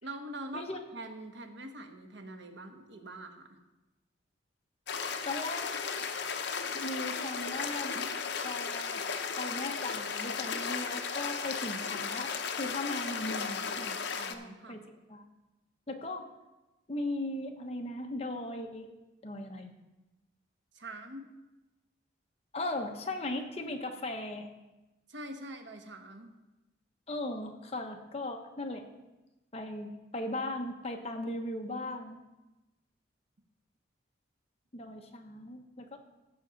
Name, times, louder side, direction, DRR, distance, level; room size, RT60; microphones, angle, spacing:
voice 1, 0.0-3.6 14.1-14.8 20.7-21.3 25.1-26.3, right 1 dB, 70° right, 5 dB, 1.2 m, -44 dB
sound 1, 4.9-14.3, left 5 dB, 65° left, 0.7 m, -35 dB
voice 2, 5.2-5.6 6.7-8.1 8.4-9.0 9.4-14.0 14.3-15.2 15.9-16.3 16.9-18.9 19.2-19.7 22.5-24.5 27.1-28.9 29.5-32.2 34.7-36.0, left 1 dB, 30° left, 3 dB, 1.1 m, -38 dB
15.5 x 6.3 x 4.1 m, 1.0 s
head